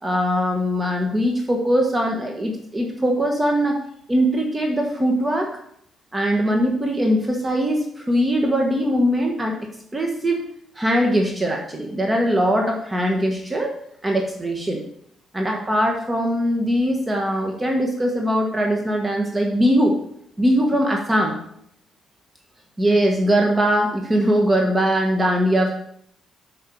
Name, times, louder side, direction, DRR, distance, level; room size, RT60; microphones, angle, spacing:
voice 1, 0.0-3.8 4.1-5.5 6.1-10.4 10.7-13.8 14.0-14.8 15.3-20.0 20.4-21.4 22.8-25.7, equal, 20° right, 1 dB, 1.4 m, -21 dB
6.7 x 6.4 x 4.7 m, 0.69 s
cardioid pair, 90°, 0 cm